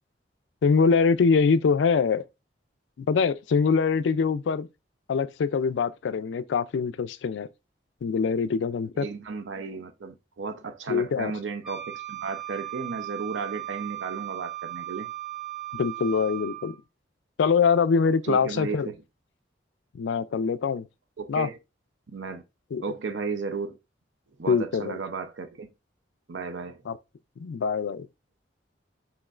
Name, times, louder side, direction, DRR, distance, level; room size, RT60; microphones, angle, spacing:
voice 1, 0.6-2.2 3.0-4.7 5.1-7.5 8.0-9.1 10.9-11.3 15.7-16.7 17.4-18.9 19.9-20.9 21.3-21.5 22.7-22.8 24.5-25.0 26.9-27.0 27.4-28.1, left 5 dB, 75° left, 0.3 m, -24 dB
voice 2, 8.9-15.1 18.2-19.0 21.2-21.6 22.1-22.4 22.8-23.8 24.4-25.7 26.3-26.8, right 4 dB, 85° right, 0.6 m, -34 dB
Wind instrument woodwind instrument, 11.6-16.8, right 15 dB, ahead, 0.7 m, -37 dB
5.1 x 3.0 x 2.4 m
head